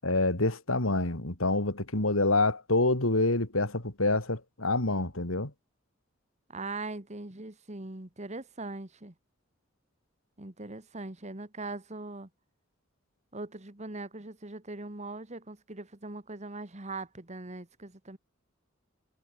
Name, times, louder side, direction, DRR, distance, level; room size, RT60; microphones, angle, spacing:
voice 1, 0.0-5.5, left 2 dB, 85° left, 3.6 m, -27 dB
voice 2, 6.5-9.1 10.4-12.3 13.3-18.2, right 2 dB, 35° right, 1.9 m, -41 dB
head